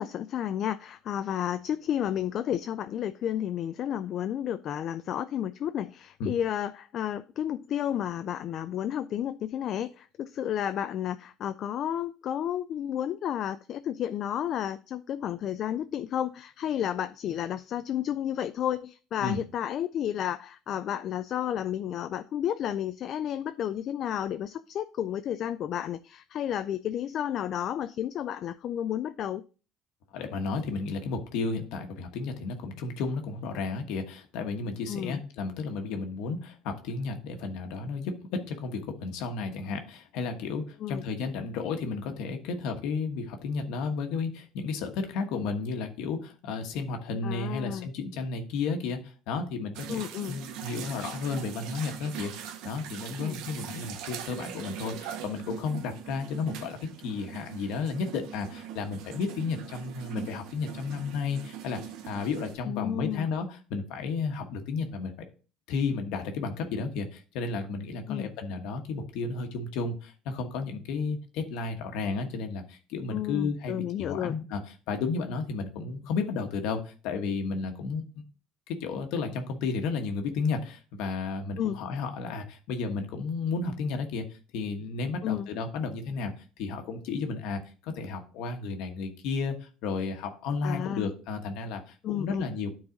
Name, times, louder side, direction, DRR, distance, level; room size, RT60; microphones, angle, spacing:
voice 1, 0.0-29.4 34.9-35.2 40.8-41.0 47.2-47.9 49.9-50.4 53.2-53.4 62.6-63.3 68.1-68.3 73.1-74.4 81.6-81.8 85.2-85.5 90.6-91.1 92.0-92.5, left 10 dB, 45° left, 0.3 m, -32 dB
voice 2, 30.1-65.1 65.7-74.6 74.9-78.3 78.7-92.7, left 4 dB, 70° left, 1.2 m, -33 dB
sound 1, 49.7-62.5, right 9 dB, 70° right, 0.8 m, -41 dB
9.7 x 4.0 x 3.8 m
cardioid pair, 135°, 0 cm